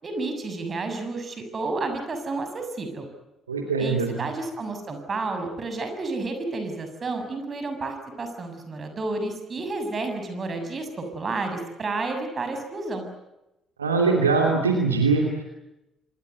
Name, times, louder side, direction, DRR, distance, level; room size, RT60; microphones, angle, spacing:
voice 1, 0.0-3.1 3.8-10.9 11.1-13.1, right 3 dB, 35° right, 6 dB, 6.8 m, -31 dB
voice 2, 3.5-4.1 13.8-15.4, right 4 dB, 80° right, 2 dB, 2.9 m, -22 dB
26.5 x 21.5 x 8.1 m, 0.91 s
figure-of-eight pair, 45°, 0 cm